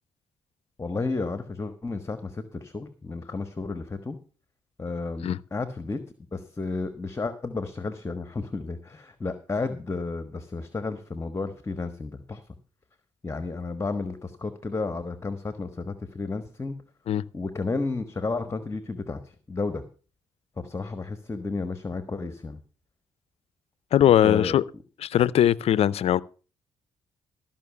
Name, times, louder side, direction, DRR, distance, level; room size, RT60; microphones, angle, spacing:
voice 1, 0.8-4.2 4.8-6.0 6.3-12.4 13.2-16.8 17.3-19.2 19.5-19.8 20.6-22.6 24.2-24.6, left 3 dB, 25° left, 1.3 m, -32 dB
voice 2, 23.9-24.6 25.0-26.2, left 11 dB, 60° left, 0.5 m, -20 dB
14.0 x 5.8 x 7.0 m
supercardioid pair, 55°, 11 cm